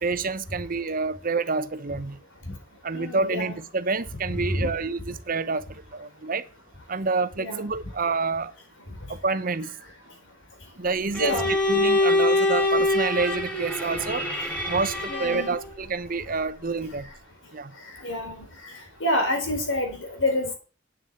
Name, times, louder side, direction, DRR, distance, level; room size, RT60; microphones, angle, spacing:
voice 1, 0.0-2.2 2.8-6.4 6.9-8.5 9.1-9.7 10.8-11.4 11.7-14.3 14.7-17.1 17.5-17.7, right 4 dB, 50° right, 0.9 m, -28 dB
voice 2, 2.9-3.6 4.3-4.7 7.4-7.6 11.2-11.5 14.1-14.5 15.1-15.5 18.0-18.4 19.0-20.5, left 1 dB, 85° left, 4.1 m, -28 dB
Bowed string instrument, 11.1-15.7, left 2 dB, 5° left, 3.4 m, -24 dB
9.3 x 6.5 x 8.1 m
head